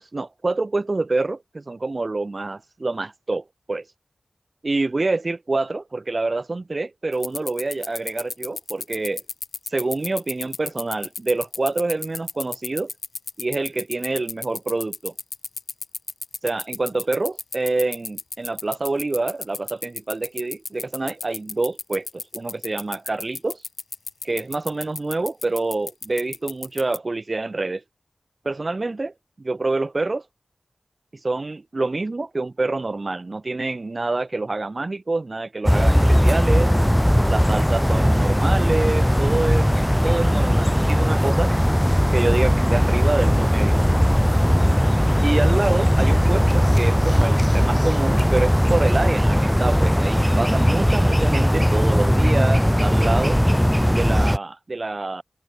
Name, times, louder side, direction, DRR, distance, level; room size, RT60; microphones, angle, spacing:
voice 1, 0.0-3.9 4.6-9.2 9.6-12.9 13.4-15.1 16.4-23.6 24.2-27.8 28.4-29.1 29.4-30.3 31.1-36.8 37.3-39.7 40.0-41.5 42.1-43.8 45.2-53.4 53.9-55.2, right 3 dB, 50° right, 1.1 m, -26 dB
sound 1, 7.1-27.0, left 4 dB, 80° left, 1.3 m, -32 dB
sound 2, 35.6-54.4, equal, 5° left, 1.4 m, -18 dB
wide cardioid pair, 60°, 0 cm